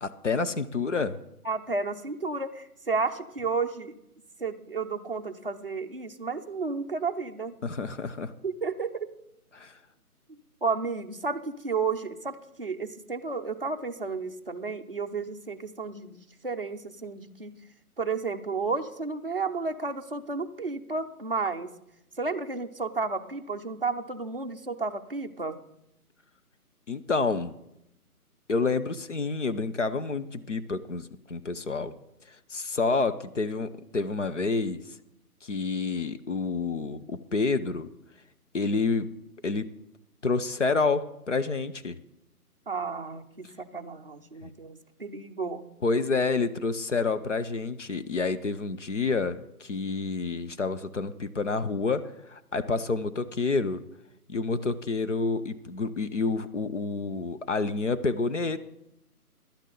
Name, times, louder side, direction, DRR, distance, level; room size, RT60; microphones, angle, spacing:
voice 1, 0.0-1.2 7.6-8.3 9.5-9.7 26.9-27.5 28.5-31.9 32.5-34.8 35.4-37.9 38.5-39.1 39.4-39.7 40.2-42.0 44.4-44.5 45.8-53.8 54.3-58.6, left 4 dB, 50° left, 11 dB, 0.7 m, -28 dB
voice 2, 1.4-3.9 4.4-7.5 8.4-9.1 10.6-17.5 18.0-21.7 22.2-25.6 42.7-45.6, right 4 dB, 40° right, 5 dB, 0.6 m, -32 dB
16.0 x 11.5 x 3.9 m, 0.82 s
hypercardioid pair, 175°, 46 cm